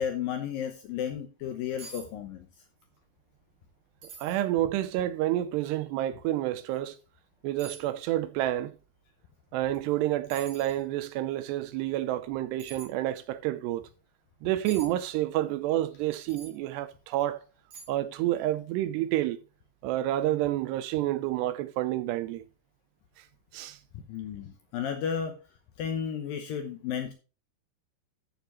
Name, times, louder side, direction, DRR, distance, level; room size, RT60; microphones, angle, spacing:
voice 1, 0.0-2.5 23.9-25.3 25.8-27.1, left 8 dB, 75° left, 2.2 m, -33 dB
sound 1, 1.4-1.5 1.8-2.1 2.4-2.9 3.3-3.4 4.0-4.4 5.1-5.2 6.7-6.8 7.6-7.9 9.7-9.9 10.3-10.8 12.6-12.9 14.7-14.9 16.3-16.6 17.1-17.2 17.7-18.1 18.4-18.5, right 4 dB, 55° right, 5.1 m, -46 dB
voice 2, 4.2-7.0 7.4-8.8 9.5-13.9 14.4-17.4 17.9-19.4 19.8-22.4 23.2-23.3 23.5-23.8, right 14 dB, 80° right, 2.6 m, -29 dB
14.5 x 6.8 x 3.0 m
omnidirectional pair, 5.1 m